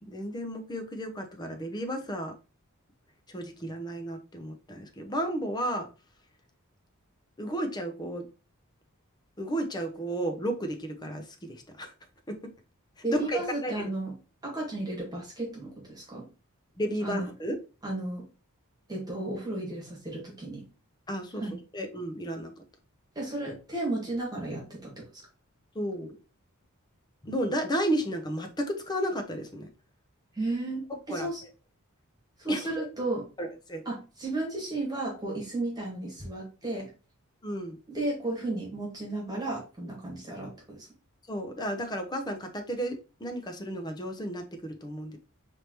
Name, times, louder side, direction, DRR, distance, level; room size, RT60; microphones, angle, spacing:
voice 1, 0.0-2.3 3.3-5.9 7.4-8.3 9.4-11.9 12.3-12.4 13.1-13.9 16.8-17.5 21.1-22.5 25.7-26.1 27.2-29.7 31.1-31.3 32.5-32.9 33.4-33.8 37.4-37.8 41.3-45.2, right 1 dB, 20° left, 5 dB, 0.7 m, -33 dB
voice 2, 13.0-14.1 14.4-16.3 17.0-17.3 17.8-18.2 18.9-20.6 21.4-21.6 23.2-25.2 30.4-31.4 32.4-33.3 33.9-36.9 37.9-40.9, right 2 dB, 20° right, -3 dB, 1.9 m, -34 dB
4.7 x 3.4 x 2.9 m, 0.32 s
head